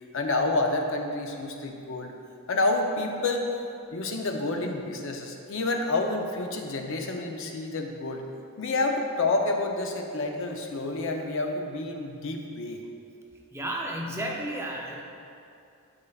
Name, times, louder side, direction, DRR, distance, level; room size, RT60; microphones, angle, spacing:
voice 1, 0.1-2.1 2.5-3.5 3.9-8.2 8.6-12.8, left 2 dB, 60° left, 3 dB, 0.6 m, -29 dB
voice 2, 13.5-15.0, right 1 dB, 10° right, -1 dB, 0.5 m, -32 dB
9.7 x 5.5 x 2.4 m, 2.6 s
head